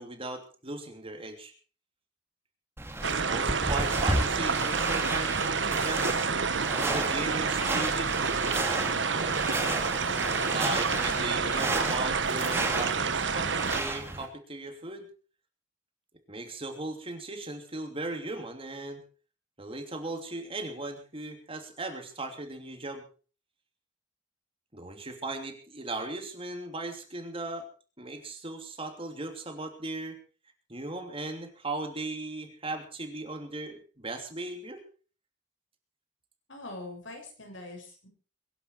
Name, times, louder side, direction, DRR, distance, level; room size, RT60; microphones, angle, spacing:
voice 1, 0.0-1.5 3.0-6.3 6.8-8.6 10.5-15.1 16.3-19.0 19.6-23.0 24.7-27.7 28.0-30.2 30.7-34.8, right 2 dB, 30° right, 5 dB, 3.0 m, -37 dB
sound 1, 2.8-14.3, right 1 dB, 15° right, 2.8 m, -33 dB
sound 2, 3.0-13.8, right 5 dB, 70° right, 1.2 m, -29 dB
voice 2, 36.5-38.1, left 2 dB, 80° left, 3 dB, 6.7 m, -43 dB
22.5 x 11.5 x 4.6 m, 0.39 s
head